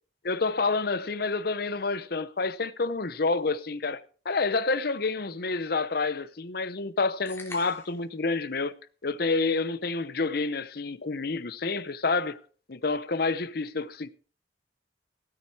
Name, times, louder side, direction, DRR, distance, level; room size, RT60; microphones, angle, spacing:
voice 1, 0.2-8.7 9.0-12.4 12.7-14.1, left 3 dB, 60° left, 0.8 m, -28 dB
sound 1, 7.3-8.1, left 3 dB, 15° left, 3.2 m, -44 dB
16.5 x 8.9 x 4.8 m
head